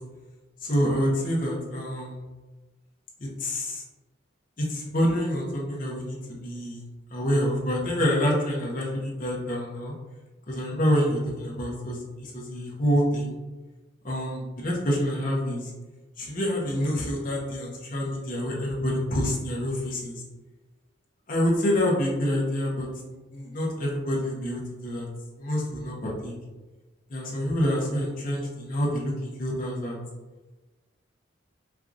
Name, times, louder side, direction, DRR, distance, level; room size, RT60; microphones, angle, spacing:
voice 1, 0.6-2.2 3.2-3.8 4.6-6.8 7.1-9.9 10.5-13.3 14.0-15.7 16.2-20.2 21.3-22.9 23.3-25.1 25.4-26.3 27.1-29.9, equal, 45° left, -3 dB, 0.8 m, -27 dB
4.5 x 2.4 x 2.5 m, 1.2 s
head